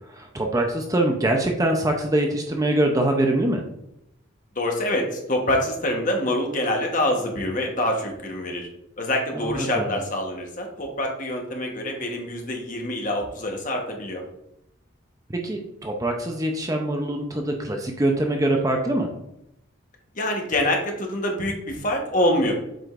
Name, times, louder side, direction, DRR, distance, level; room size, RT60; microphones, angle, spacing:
voice 1, 0.1-3.6 9.3-10.0 15.3-19.1, right 1 dB, 15° right, 2 dB, 0.5 m, -24 dB
voice 2, 4.6-8.7 9.0-14.2 20.1-22.5, left 1 dB, 40° left, 2 dB, 1.1 m, -25 dB
7.7 x 4.9 x 2.5 m, 0.81 s
head